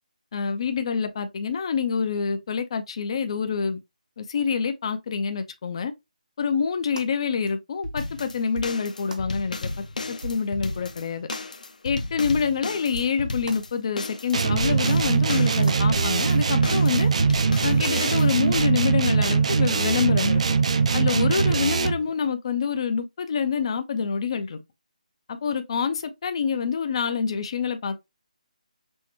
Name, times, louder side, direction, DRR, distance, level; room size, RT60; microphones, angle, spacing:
voice 1, 0.3-3.8 4.2-5.9 6.4-9.7 10.1-11.3 11.8-17.1 17.6-20.4 20.9-24.6 25.3-28.0, left 6 dB, 45° left, 0.5 m, -26 dB
sound 1, 7.0-7.1 7.5-7.6 7.8-8.1 8.5-8.8 9.1-9.2 9.7-9.8 10.2-10.4 10.7-10.8 11.3-11.5 11.9-12.0 12.2-12.5 12.9-13.1 13.5-13.6 14.0-14.1 14.6-14.8 15.1-15.2 15.7-15.8 16.2-16.3 16.6-16.8 17.3-17.5 17.8-18.0, right 1 dB, 75° right, 1.0 m, -37 dB
sound 2, 8.0-18.6, left 2 dB, 75° left, 0.9 m, -34 dB
sound 3, 14.3-22.1, right 5 dB, 55° right, 0.4 m, -21 dB
6.1 x 2.1 x 3.0 m
figure-of-eight pair, 160°, 4 cm